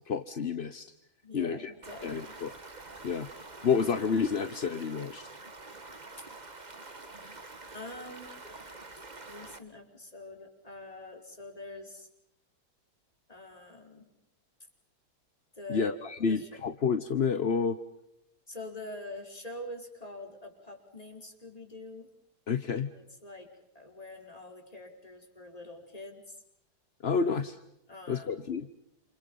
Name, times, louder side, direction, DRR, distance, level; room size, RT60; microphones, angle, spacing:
voice 1, 0.1-0.9 1.3-1.7 2.0-2.5 3.0-3.3 3.6-5.3 15.7-17.8 22.5-22.9 27.0-27.6 28.1-28.7, left 5 dB, 40° left, 10 dB, 1.0 m, -29 dB
voice 2, 1.2-2.4 6.2-6.3 7.7-8.3 9.3-12.1 13.3-14.1 15.5-16.0 16.3-16.5 18.5-22.1 22.9-26.4 27.9-28.5, left 2 dB, 15° left, 2 dB, 5.1 m, -45 dB
Stream, 1.8-9.6, right 3 dB, 25° right, 1.6 m, -47 dB
29.0 x 29.0 x 5.6 m, 0.81 s
omnidirectional pair, 2.1 m